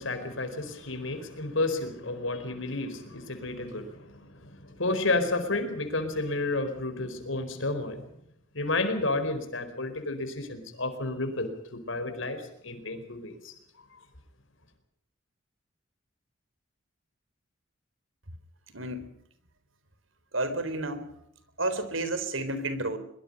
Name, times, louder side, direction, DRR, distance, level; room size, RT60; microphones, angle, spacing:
voice 1, 0.0-8.0 8.5-13.5, left 2 dB, 80° left, 8 dB, 4.6 m, -31 dB
voice 2, 20.3-21.0 21.6-23.0, right 2 dB, 85° right, 12 dB, 4.0 m, -30 dB
23.0 x 23.0 x 5.3 m, 0.74 s
head